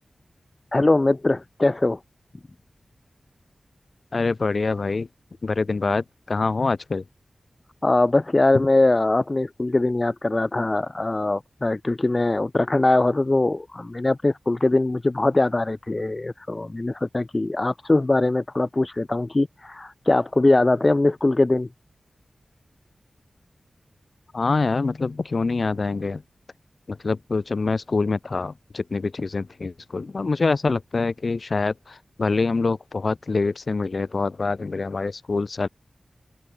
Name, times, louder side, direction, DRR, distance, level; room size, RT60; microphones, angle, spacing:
voice 1, 0.7-2.0 7.8-21.7, left 2 dB, 35° left, 3.5 m, -21 dB
voice 2, 4.1-5.1 5.4-7.0 24.3-26.2 26.9-31.7 32.2-35.7, left 3 dB, 60° left, 6.9 m, -25 dB
open air
cardioid pair, 45°, 0 cm